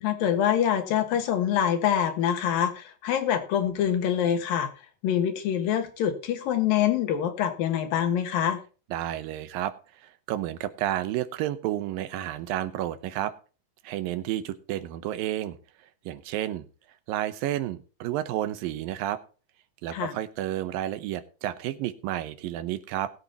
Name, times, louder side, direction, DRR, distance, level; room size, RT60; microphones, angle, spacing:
voice 1, 0.0-4.7 5.0-8.6 19.9-20.1, left 9 dB, 85° left, 6 dB, 3.2 m, -25 dB
voice 2, 8.9-9.7 10.0-13.3 13.8-15.6 16.1-16.7 17.1-19.2 19.8-23.1, right 13 dB, 85° right, 12 dB, 2.6 m, -31 dB
20.0 x 8.3 x 2.9 m, 0.36 s
omnidirectional pair, 4.0 m